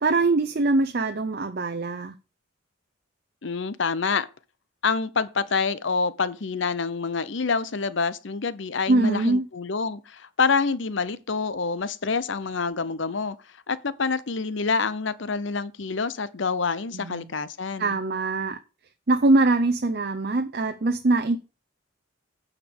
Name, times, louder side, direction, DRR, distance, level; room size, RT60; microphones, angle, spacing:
voice 1, 0.0-2.1 8.9-9.5 16.9-17.3 17.8-18.6 19.1-21.4, right 2 dB, 50° right, 0.6 m, -23 dB
voice 2, 3.4-4.3 4.8-13.4 13.7-18.0, left 4 dB, 65° left, 0.7 m, -27 dB
9.2 x 5.2 x 7.1 m
head